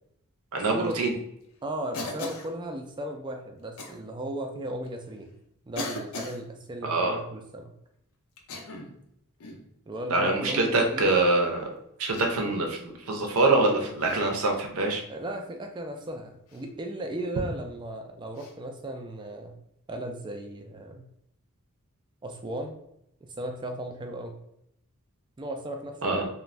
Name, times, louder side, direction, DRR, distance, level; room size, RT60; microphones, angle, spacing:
voice 1, 0.5-1.1 6.8-7.2 10.1-11.7 12.0-15.0 26.0-26.3, right 2 dB, 70° right, 2 dB, 0.6 m, -24 dB
voice 2, 1.6-5.3 5.7-7.7 9.9-11.1 15.1-19.6 19.9-21.1 22.2-22.8 23.2-24.4 25.4-26.2, right 1 dB, 20° right, 4 dB, 0.3 m, -36 dB
Cough, 1.9-2.5 3.8-4.0 4.9-5.0 5.8-6.4 8.4-9.0 9.4-9.7 10.8-11.1 12.2-12.5 14.0-14.3 16.5-16.7 18.4-18.5, left 2 dB, 70° left, 0.5 m, -38 dB
2.5 x 2.2 x 3.2 m, 0.76 s
head